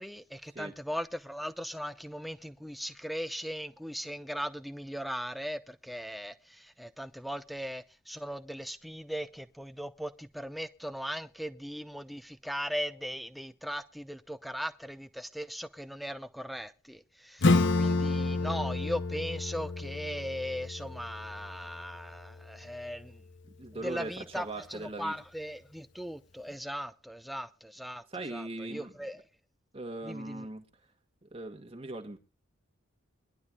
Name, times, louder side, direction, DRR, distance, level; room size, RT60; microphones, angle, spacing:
voice 1, 0.0-23.2 23.8-28.0 28.3-29.2 30.0-30.5, equal, ahead, 0.7 m, -38 dB
Acoustic guitar / Strum, 17.4-22.6, left 3 dB, 55° left, 0.7 m, -30 dB
voice 2, 23.4-25.1 28.1-29.0 29.7-30.6 31.2-32.2, right 2 dB, 25° right, 1.7 m, -40 dB
23.0 x 11.5 x 2.4 m
head